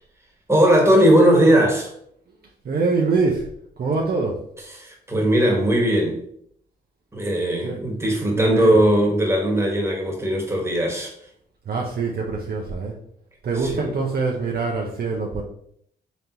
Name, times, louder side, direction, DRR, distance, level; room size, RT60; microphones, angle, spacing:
voice 1, 0.5-1.9 4.7-6.2 7.1-11.1 13.6-13.9, right 1 dB, 15° right, -1 dB, 1.6 m, -18 dB
voice 2, 2.6-3.5 3.8-4.4 7.6-7.8 8.3-8.8 11.7-12.9 13.4-15.4, right 4 dB, 50° right, -1 dB, 0.8 m, -24 dB
4.0 x 3.3 x 2.9 m, 0.66 s
hypercardioid pair, 50°, 20 cm